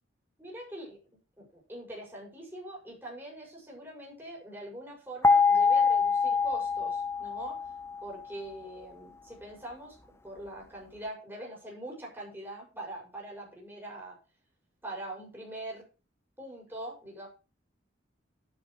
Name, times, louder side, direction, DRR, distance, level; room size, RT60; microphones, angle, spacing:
voice 1, 0.4-1.0 1.4-7.6 8.0-10.0 10.2-14.2 14.8-15.8 16.4-17.3, right 1 dB, 10° right, -3 dB, 6.6 m, -43 dB
sound 1, 5.2-8.2, left 5 dB, 15° left, 0.9 m, -25 dB
11.0 x 8.4 x 4.8 m, 0.32 s
head